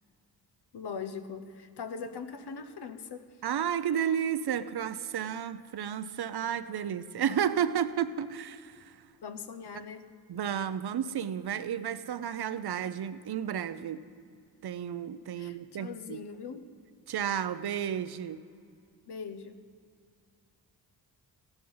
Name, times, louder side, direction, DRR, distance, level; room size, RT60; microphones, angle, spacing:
voice 1, 0.7-3.4 9.2-10.1 15.3-16.7 19.1-19.6, left 5 dB, 65° left, 9 dB, 1.0 m, -41 dB
voice 2, 3.4-9.0 10.3-14.0 14.6-16.2 17.1-18.4, right 9 dB, 65° right, 13 dB, 0.7 m, -32 dB
15.0 x 11.5 x 5.6 m, 2.3 s
cardioid pair, 60°, 42 cm